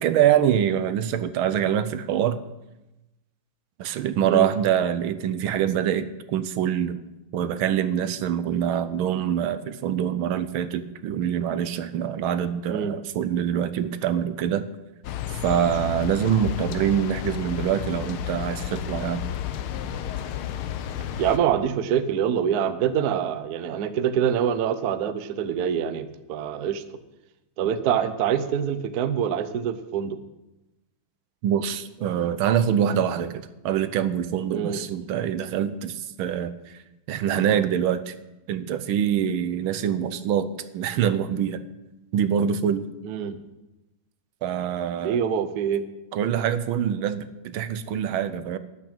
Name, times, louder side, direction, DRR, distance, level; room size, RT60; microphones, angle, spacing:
voice 1, 0.0-2.4 3.8-7.0 7.3-14.7 15.4-19.2 31.4-36.8 37.1-38.1 38.5-41.6 42.1-42.9 44.4-45.2 46.1-48.6, right 9 dB, 80° right, 12 dB, 1.5 m, -25 dB
sound 1, 15.0-21.4, left 10 dB, 85° left, 1.6 m, -32 dB
voice 2, 21.2-26.8 27.6-30.2 34.5-34.9 43.0-43.4 45.0-45.8, right 8 dB, 60° right, 11 dB, 1.1 m, -25 dB
12.0 x 6.1 x 8.7 m, 0.98 s
omnidirectional pair, 2.3 m